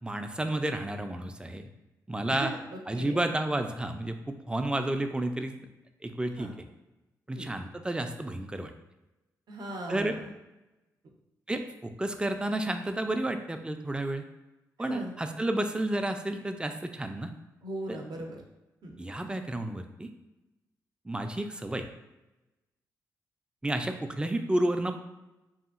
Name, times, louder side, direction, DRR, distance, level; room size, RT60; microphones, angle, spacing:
voice 1, 0.0-1.6 2.1-2.5 2.9-5.5 6.0-6.5 7.3-8.7 9.9-10.2 11.5-14.2 14.8-17.3 17.9-18.0 19.0-20.1 21.1-21.9 23.6-24.9, right 1 dB, 10° right, 7 dB, 0.3 m, -31 dB
voice 2, 2.3-3.2 6.4-6.5 7.3-7.5 9.5-10.3 14.8-15.1 17.6-18.4 18.8-19.0, right 1 dB, 65° right, 1 dB, 0.5 m, -38 dB
2.8 x 2.5 x 2.4 m, 1.0 s
supercardioid pair, 45°, 8 cm